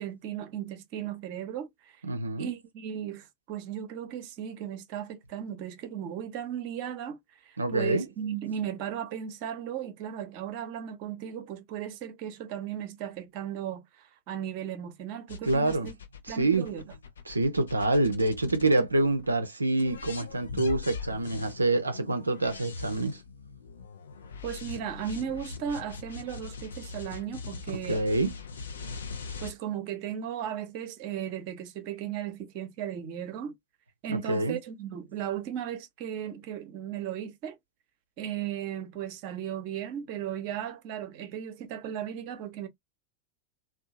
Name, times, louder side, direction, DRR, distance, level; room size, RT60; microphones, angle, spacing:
voice 1, 0.0-2.0 2.4-15.9 16.3-16.8 24.4-28.3 29.4-33.5 34.0-37.6 38.2-42.7, right 9 dB, 45° right, 0.7 m, -36 dB
voice 2, 2.1-2.5 7.6-8.1 15.4-15.9 16.2-16.7 17.3-23.2 27.9-28.3 34.1-34.6, right 2 dB, 80° right, 0.4 m, -26 dB
sound 1, 15.3-19.3 19.8-29.5, left 5 dB, 70° left, 0.6 m, -41 dB
2.7 x 2.2 x 2.6 m
figure-of-eight pair, 90°, 0 cm